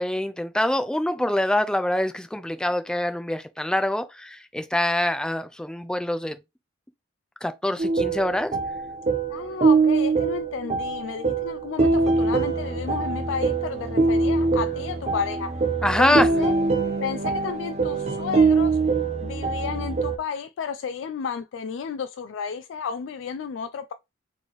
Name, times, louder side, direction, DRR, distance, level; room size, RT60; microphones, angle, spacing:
voice 1, 0.0-6.3 7.4-8.5 15.8-16.3, left 1 dB, 5° left, 0.4 m, -25 dB
sound 1, 7.8-20.2, right 4 dB, 35° right, 0.7 m, -23 dB
voice 2, 9.3-15.6 16.0-16.5 17.0-18.8 19.2-23.9, left 6 dB, 90° left, 0.3 m, -32 dB
4.3 x 3.3 x 3.0 m
head